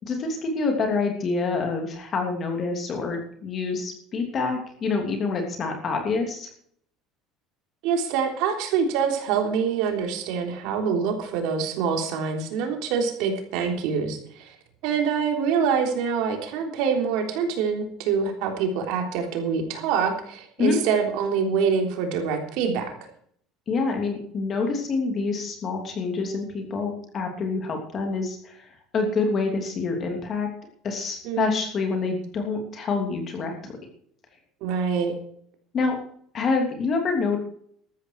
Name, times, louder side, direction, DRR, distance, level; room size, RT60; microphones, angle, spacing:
voice 1, 0.1-6.5 20.6-20.8 23.7-30.5 30.8-33.8 35.7-36.0 36.3-37.4, left 4 dB, 30° left, 4 dB, 3.0 m, -27 dB
voice 2, 7.8-14.6 14.8-22.9 31.2-31.6 34.6-35.1, right 6 dB, 65° right, 4 dB, 3.5 m, -25 dB
13.5 x 13.0 x 4.7 m, 0.63 s
cardioid pair, 170°, 0 cm